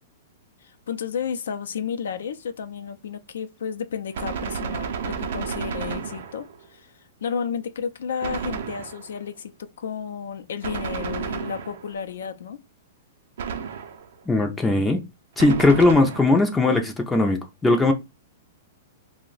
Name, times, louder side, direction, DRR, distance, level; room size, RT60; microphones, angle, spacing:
voice 1, 0.6-6.9 7.2-12.6, left 7 dB, 85° left, 0.4 m, -32 dB
Gunshot gunfire, 4.1-6.7 8.2-9.3 10.6-12.1 13.4-14.2 15.4-16.5, right 6 dB, 70° right, 0.5 m, -32 dB
voice 2, 14.3-15.0 15.4-17.9, left 2 dB, 10° left, 0.4 m, -19 dB
2.6 x 2.1 x 3.9 m
hypercardioid pair, 150°, 0 cm